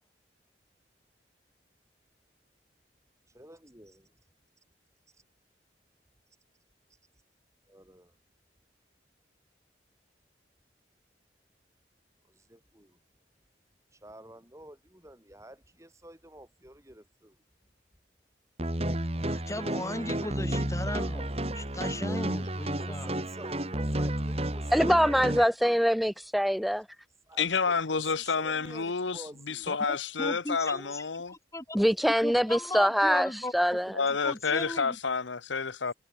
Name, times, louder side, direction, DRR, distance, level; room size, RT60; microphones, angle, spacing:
voice 1, 3.3-4.1 7.7-8.1 12.3-13.0 13.9-17.4 22.1-25.3 27.3-29.7 30.6-30.9, right 1 dB, 15° right, 6.3 m, -49 dB
sound 1, 18.6-25.4, right 1 dB, 35° right, 2.5 m, -31 dB
voice 2, 19.2-21.3 21.5-23.2 29.7-31.8 32.2-33.5 34.2-35.0, left 1 dB, 15° left, 2.6 m, -37 dB
voice 3, 24.7-26.8 31.7-33.9, equal, ahead, 0.5 m, -24 dB
voice 4, 27.4-31.3 33.9-35.9, left 5 dB, 90° left, 1.1 m, -29 dB
head